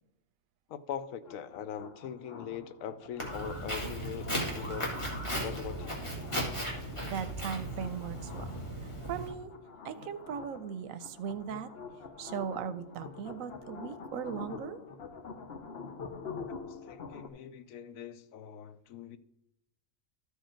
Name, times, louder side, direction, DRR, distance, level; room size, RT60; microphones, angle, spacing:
voice 1, 0.7-5.1 5.4-6.0 6.7-6.9 16.7-19.2, left 8 dB, 85° left, 1.0 m, -42 dB
sound 1, 1.2-17.3, left 5 dB, 50° left, 1.0 m, -47 dB
Walk footsteps, 3.2-9.3, right 1 dB, 20° left, 2.1 m, -36 dB
voice 2, 6.7-9.5 9.8-11.7 12.2-14.8, right 7 dB, 90° right, 1.0 m, -39 dB
13.5 x 4.9 x 4.4 m
omnidirectional pair, 1.4 m